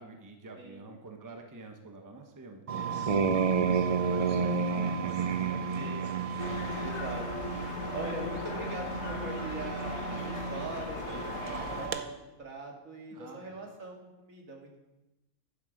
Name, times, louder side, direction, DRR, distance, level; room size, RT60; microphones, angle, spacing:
voice 1, 0.0-3.2 4.1-6.5 13.1-13.6, right 2 dB, 15° right, 4 dB, 0.8 m, -46 dB
sound 1, 2.7-12.0, right 5 dB, 50° right, 0.4 m, -32 dB
voice 2, 3.2-3.7 5.7-6.1 6.8-7.5 7.9-14.8, right 2 dB, 80° right, 0 dB, 2.3 m, -42 dB
sound 2, 6.4-11.9, left 4 dB, 60° left, 1.2 m, -38 dB
10.5 x 7.5 x 5.1 m, 0.99 s
omnidirectional pair, 1.4 m